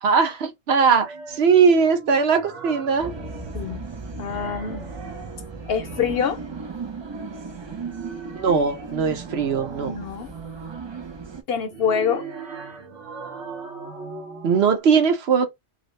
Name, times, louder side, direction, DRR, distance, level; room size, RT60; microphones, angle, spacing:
voice 1, 0.0-3.1 8.4-9.9 14.4-15.5, right 6 dB, 65° right, 1.0 m, -20 dB
sound 1, 0.9-3.8 4.1-6.4 7.5-10.1 11.5-14.8, right 5 dB, 85° right, 1.3 m, -40 dB
sound 2, 3.0-11.4, right 4 dB, 35° right, 0.4 m, -36 dB
voice 2, 4.2-4.9 5.7-6.4 9.8-10.3 11.5-12.3, left 7 dB, 65° left, 0.8 m, -25 dB
2.7 x 2.6 x 3.1 m
omnidirectional pair, 1.2 m